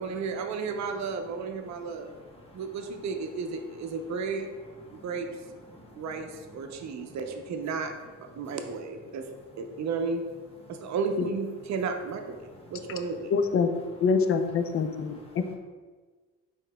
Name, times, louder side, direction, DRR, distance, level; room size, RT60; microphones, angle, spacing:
voice 1, 0.0-2.1 2.5-4.5 4.9-5.3 6.0-7.9 8.2-9.2 9.6-10.2 10.7-13.3, right 4 dB, 65° right, 5 dB, 0.6 m, -33 dB
voice 2, 1.7-2.6 4.9-5.1 5.7-7.2 8.5-8.6 10.6-10.9 12.5-12.8 14.6-15.6, left 1 dB, 20° left, -1 dB, 1.0 m, -53 dB
voice 3, 13.3-13.7 14.0-15.2, left 5 dB, 45° left, 8 dB, 0.5 m, -24 dB
4.7 x 4.4 x 2.2 m, 1.4 s
cardioid pair, 90°, 30 cm